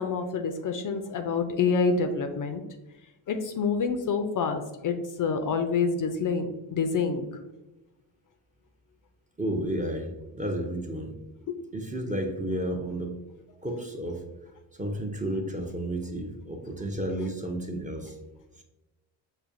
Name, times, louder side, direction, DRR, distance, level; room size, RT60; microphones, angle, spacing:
voice 1, 0.0-2.6 3.3-7.3 11.5-11.6, left 5 dB, 45° left, 7 dB, 0.4 m, -27 dB
voice 2, 9.4-11.1 11.7-13.2 13.6-14.2 14.8-18.1, right 1 dB, 15° right, 2 dB, 0.5 m, -32 dB
4.9 x 2.3 x 2.5 m, 1.0 s
supercardioid pair, 55°, 47 cm